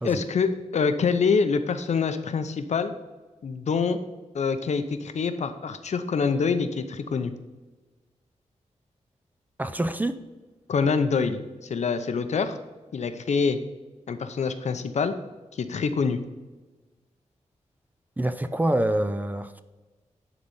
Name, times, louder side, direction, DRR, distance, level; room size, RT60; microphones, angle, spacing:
voice 1, 0.0-2.9 3.4-4.0 4.3-7.3 10.7-12.6 12.9-13.6 14.1-15.1 15.5-16.2, left 5 dB, 65° left, 9 dB, 0.7 m, -25 dB
voice 2, 9.6-10.2 18.2-19.6, right 1 dB, 15° right, 10 dB, 0.4 m, -26 dB
10.5 x 4.0 x 5.4 m, 1.2 s
wide cardioid pair, 95°, 13 cm